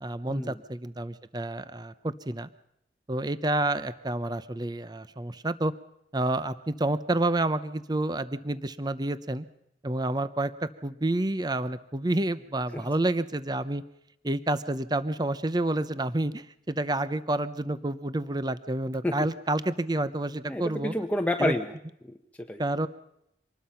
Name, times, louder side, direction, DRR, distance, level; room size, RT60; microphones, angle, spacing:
voice 1, 0.0-2.5 3.1-5.7 6.1-9.4 9.8-10.5 10.8-13.8 14.2-20.9 21.4-21.5 22.6-22.9, right 2 dB, 25° right, 14 dB, 0.7 m, -29 dB
voice 2, 20.5-21.7 22.0-22.6, left 1 dB, 10° left, 4 dB, 1.0 m, -29 dB
25.5 x 20.5 x 5.7 m, 0.78 s
head